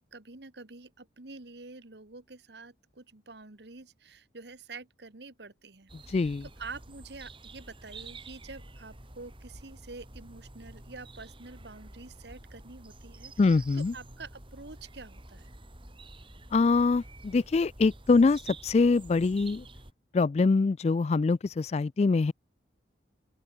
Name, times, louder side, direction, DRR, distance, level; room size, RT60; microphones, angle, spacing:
voice 1, 0.0-6.3 6.6-15.5, right 3 dB, 65° right, 1.7 m, -47 dB
sound 1, 5.9-19.9, right 2 dB, 30° right, 5.0 m, -49 dB
voice 2, 6.1-6.4 13.4-13.9 16.5-19.7 20.1-22.3, left 4 dB, 35° left, 0.3 m, -24 dB
open air
head